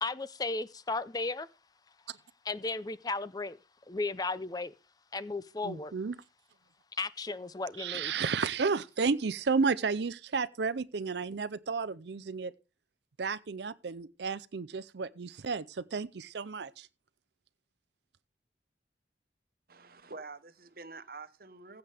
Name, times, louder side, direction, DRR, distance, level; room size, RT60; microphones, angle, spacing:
voice 1, 0.0-1.5 2.5-3.6 3.9-4.7 5.1-5.9 7.0-8.1, left 3 dB, 20° left, 0.5 m, -35 dB
voice 2, 5.6-6.2 7.8-12.5 13.2-16.9, right 5 dB, 70° right, 0.6 m, -32 dB
voice 3, 19.7-21.8, right 3 dB, 55° right, 1.1 m, -47 dB
15.5 x 7.9 x 3.4 m
head